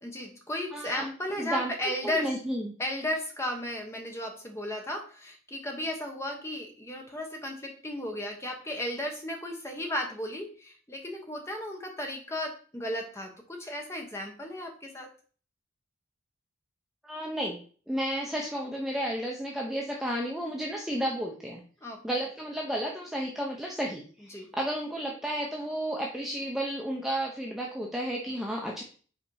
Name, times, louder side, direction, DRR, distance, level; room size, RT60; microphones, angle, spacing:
voice 1, 0.0-2.3 2.8-15.1 21.8-22.0 24.3-24.5, left 1 dB, 15° left, 2 dB, 1.1 m, -35 dB
voice 2, 0.7-1.1 1.4-2.7 17.0-17.6 17.9-21.6 22.0-28.8, right 1 dB, ahead, -2 dB, 0.7 m, -32 dB
5.0 x 4.3 x 4.7 m, 0.42 s
head